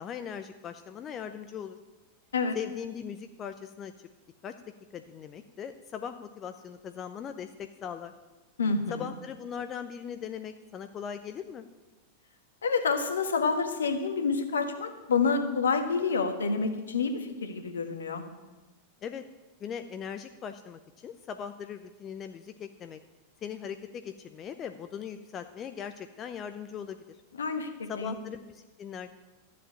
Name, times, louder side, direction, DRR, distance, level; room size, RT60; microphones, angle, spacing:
voice 1, 0.0-1.8 2.5-3.9 4.4-4.5 4.9-8.1 8.9-11.7 19.0-19.2 19.6-23.0 23.4-27.2 27.9-29.1, left 8 dB, 30° left, 8 dB, 0.6 m, -39 dB
voice 2, 8.6-9.0 12.6-18.2 27.4-28.2, left 4 dB, 70° left, 7 dB, 1.4 m, -28 dB
12.5 x 7.6 x 8.8 m, 1.2 s
figure-of-eight pair, 90°, 0 cm